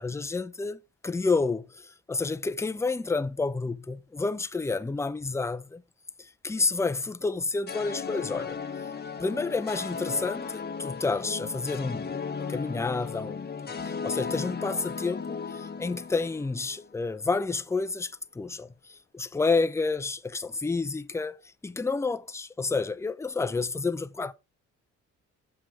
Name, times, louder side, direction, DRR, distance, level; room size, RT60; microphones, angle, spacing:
voice 1, 0.0-5.8 6.2-8.6 9.2-13.5 13.8-18.7 19.1-24.3, left 3 dB, 10° left, 0.5 m, -30 dB
sound 1, 7.7-17.0, left 5 dB, 30° left, 1.3 m, -36 dB
8.7 x 7.6 x 3.5 m
cardioid pair, 90°, 30 cm